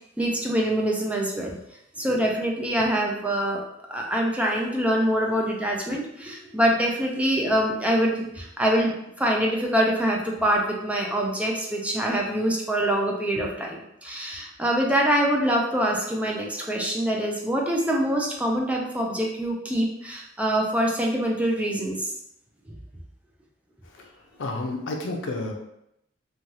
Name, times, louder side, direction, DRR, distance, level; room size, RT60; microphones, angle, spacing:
voice 1, 0.2-1.5 2.0-3.6 3.9-22.1 22.7-22.8, right 1 dB, 5° right, -1 dB, 0.4 m, -25 dB
voice 2, 24.4-25.5, left 2 dB, 80° left, 2 dB, 0.5 m, -30 dB
3.1 x 2.3 x 2.7 m, 0.79 s
head